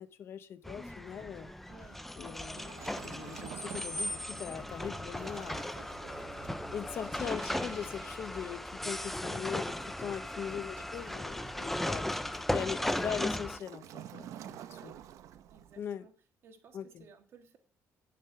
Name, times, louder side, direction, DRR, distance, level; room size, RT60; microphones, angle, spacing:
voice 1, 0.0-1.5 2.2-5.7 6.7-14.9 15.8-16.1 16.7-17.1, left 8 dB, 45° left, 0.8 m, -41 dB
sound 1, 0.6-13.6, left 1 dB, 5° left, 0.4 m, -37 dB
voice 2, 1.7-2.0 10.1-10.7 14.6-14.9 15.5-16.1 16.4-17.6, right 5 dB, 45° right, 1.6 m, -58 dB
Waves surf, 2.2-15.9, right 11 dB, 70° right, 0.7 m, -51 dB
sound 2, 3.6-8.5 11.2-12.3, right 10 dB, 85° right, 1.1 m, -60 dB
9.5 x 6.7 x 5.6 m
cardioid pair, 180°, 6 cm